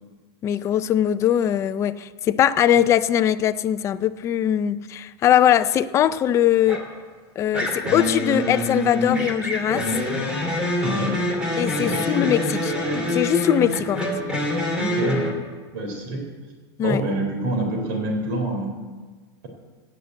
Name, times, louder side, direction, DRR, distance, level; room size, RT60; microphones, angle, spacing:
voice 1, 0.4-6.8 7.4-9.8 11.6-12.7 13.1-14.1 16.8-17.0, left 10 dB, 20° left, 12 dB, 0.4 m, -21 dB
sound 1, 6.7-7.0 7.5-15.3, left 1 dB, 5° right, 2.4 m, -25 dB
voice 2, 10.8-11.1 11.8-12.0 14.8-15.2 15.7-16.2 16.8-18.7, right 2 dB, 50° right, 2 dB, 3.9 m, -26 dB
17.5 x 6.6 x 8.1 m, 1.4 s
supercardioid pair, 160°, 14 cm